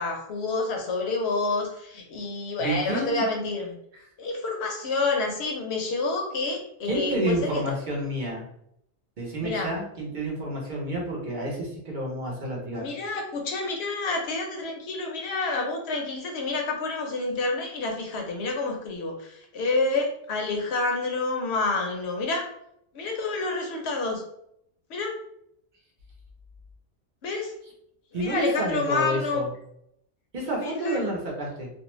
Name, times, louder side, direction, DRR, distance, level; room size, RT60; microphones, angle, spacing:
voice 1, 0.0-3.8 4.2-7.8 9.4-9.7 12.8-22.5 22.9-24.2 24.9-25.2 27.2-27.5 28.1-29.4 30.6-31.0, left 3 dB, 70° left, 1 dB, 0.9 m, -28 dB
voice 2, 2.6-3.2 3.9-4.0 6.9-8.4 9.2-12.9 28.1-29.5 30.3-31.7, right 1 dB, 50° right, -2 dB, 0.8 m, -29 dB
2.5 x 2.1 x 3.0 m, 0.74 s
omnidirectional pair, 1.1 m